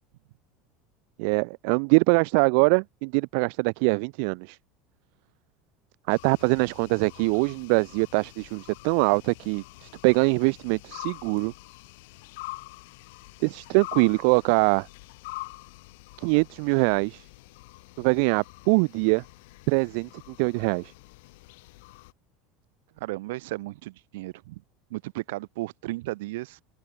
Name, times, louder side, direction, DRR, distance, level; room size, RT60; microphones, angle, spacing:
voice 1, 1.2-4.6 6.1-11.5 13.4-14.9 16.2-17.2 18.0-19.2 19.7-20.1 20.4-20.9, right 38 dB, 60° right, 0.4 m, -23 dB
sound 1, 6.1-22.1, left 23 dB, 70° left, 5.6 m, -45 dB
voice 2, 23.0-24.6 24.9-26.6, right 19 dB, 80° right, 2.2 m, -34 dB
open air
cardioid pair, 170°, 0 cm